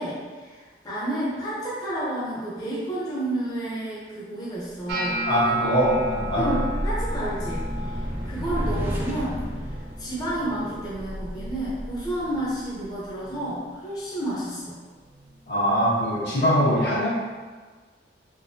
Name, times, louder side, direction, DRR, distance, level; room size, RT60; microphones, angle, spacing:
voice 1, 0.0-5.3 6.3-14.8, right 1 dB, 20° left, -9 dB, 0.8 m, -31 dB
sound 1, 4.9-13.3, equal, 10° right, 0.4 m, -32 dB
sound 2, 4.9-11.0 11.2-11.8 12.1-12.7 13.3-13.5 15.2-15.3, right 1 dB, 80° right, 0.8 m, -33 dB
voice 2, 5.3-6.5 15.5-17.1, equal, 65° left, -8 dB, 1.3 m, -22 dB
3.6 x 3.6 x 2.7 m, 1.4 s
head